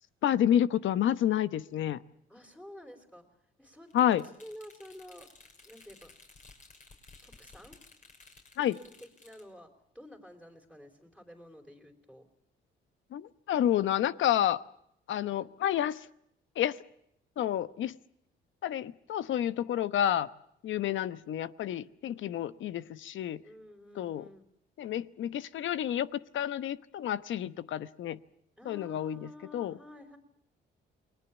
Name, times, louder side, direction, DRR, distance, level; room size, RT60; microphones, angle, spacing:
voice 1, 0.2-2.0 3.9-4.2 8.6-8.8 13.1-14.6 15.1-16.0 16.6-16.8 17.4-18.0 18.6-20.3 20.6-23.4 24.0-24.3 24.8-26.1 26.3-28.2 28.7-29.7, left 11 dB, 75° left, 14 dB, 1.0 m, -29 dB
voice 2, 2.3-3.2 3.6-3.9 4.4-5.3 5.6-6.1 7.2-7.8 8.6-12.3 22.0-22.7 23.4-24.5 28.6-30.2, left 1 dB, 5° left, 3 dB, 4.1 m, -51 dB
sound 1, 3.9-9.4, left 3 dB, 40° left, 6.0 m, -56 dB
29.0 x 20.5 x 7.2 m, 0.75 s
cardioid pair, 90°, 20 cm